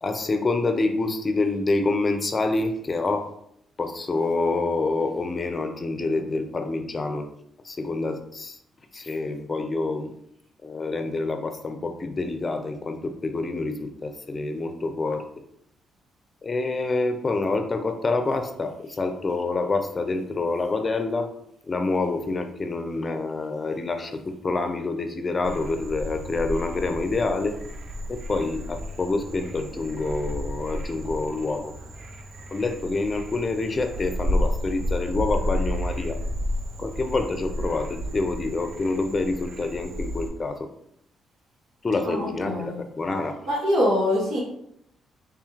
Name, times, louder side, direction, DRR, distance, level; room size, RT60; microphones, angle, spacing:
voice 1, 0.0-3.3 3.8-7.3 7.6-8.6 8.9-10.1 10.6-15.2 16.4-21.3 21.7-27.6 28.1-31.7 32.5-36.2 36.8-40.6 41.8-43.3, left 3 dB, 30° left, 6 dB, 0.6 m, -27 dB
Frog, 25.4-40.3, equal, 60° right, 0.7 m, -32 dB
voice 2, 42.0-42.7 43.5-44.4, left 1 dB, 80° right, -6 dB, 1.3 m, -24 dB
3.6 x 3.0 x 3.7 m, 0.74 s
cardioid pair, 90°, 0 cm